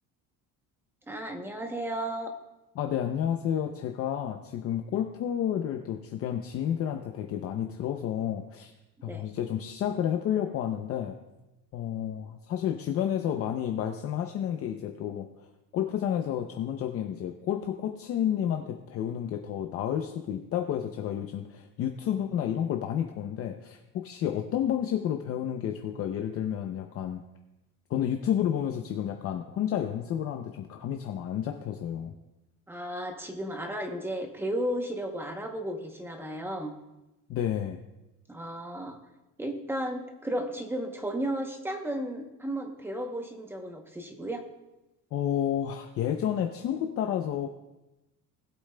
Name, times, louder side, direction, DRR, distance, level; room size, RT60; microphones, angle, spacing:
voice 1, 1.1-2.3 9.0-9.3 32.7-36.7 38.3-39.0 39.4-44.4, right 1 dB, 5° right, 4 dB, 0.8 m, -34 dB
voice 2, 2.7-8.7 9.0-11.2 11.7-27.2 27.9-32.1 37.3-37.8 45.1-47.5, left 10 dB, 40° left, 4 dB, 0.6 m, -30 dB
19.5 x 8.2 x 2.2 m, 1.0 s
cardioid pair, 175°, 37 cm